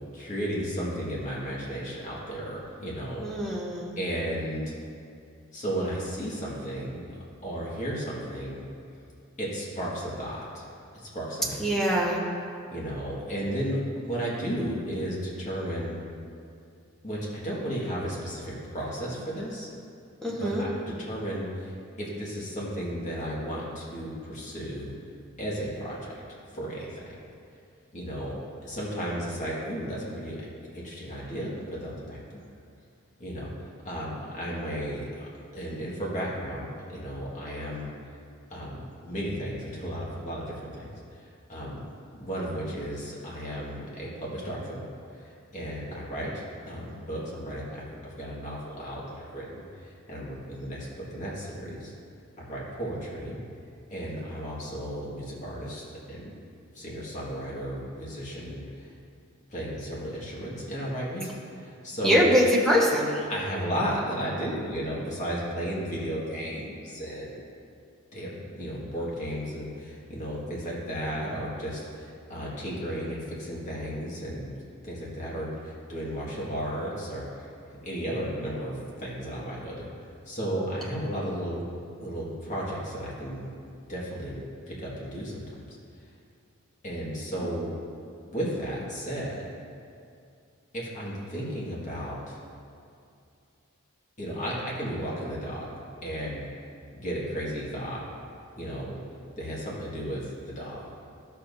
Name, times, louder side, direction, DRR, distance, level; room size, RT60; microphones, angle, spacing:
voice 1, 0.1-3.3 4.0-4.6 5.5-8.6 9.4-10.7 10.9-11.8 12.7-16.0 17.0-19.7 20.3-24.9 25.4-26.2 26.5-27.1 27.9-30.4 30.7-32.2 33.2-35.3 35.5-37.9 38.5-41.8 42.1-44.8 45.1-51.9 52.4-53.4 53.9-56.3 56.7-58.9 59.5-62.2 63.3-67.4 68.1-74.5 74.8-77.5 77.8-79.9 80.3-81.7 82.0-83.5 83.9-85.4 86.8-87.7 88.3-89.5 90.7-92.4 94.2-95.7 96.0-96.4 96.9-98.1 98.6-99.0 99.4-100.9, equal, 35° left, -6 dB, 1.8 m, -34 dB
voice 2, 3.2-3.9 11.6-12.2 20.2-20.7 62.0-63.3, equal, ahead, -5 dB, 1.3 m, -23 dB
13.0 x 6.9 x 2.7 m, 2.5 s
head